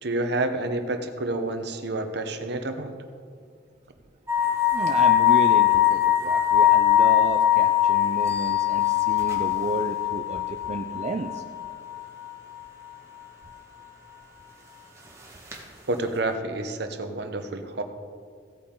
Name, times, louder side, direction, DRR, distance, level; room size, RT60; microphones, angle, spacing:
voice 1, 0.0-3.0 15.9-17.8, right 2 dB, 65° right, 7 dB, 1.0 m, -29 dB
sound 1, 4.3-12.0 12.2-12.3 15.5-15.6, left 12 dB, 15° right, 1.5 m, -21 dB
voice 2, 4.7-11.4, right 3 dB, 40° right, 4 dB, 0.4 m, -32 dB
16.0 x 8.6 x 3.8 m, 2.1 s
head